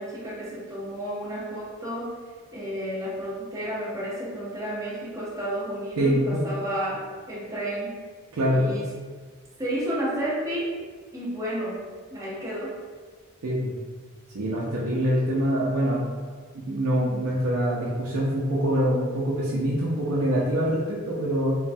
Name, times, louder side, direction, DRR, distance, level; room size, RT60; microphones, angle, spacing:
voice 1, 0.0-2.2 2.5-8.0 8.5-8.9 9.6-10.8 11.1-11.8 12.1-12.8, right 1 dB, 15° right, -7 dB, 0.6 m, -31 dB
voice 2, 8.3-8.8 13.4-13.7 14.3-16.0 16.7-21.6, equal, 80° right, -5 dB, 0.5 m, -24 dB
3.0 x 2.1 x 2.5 m, 1.5 s
head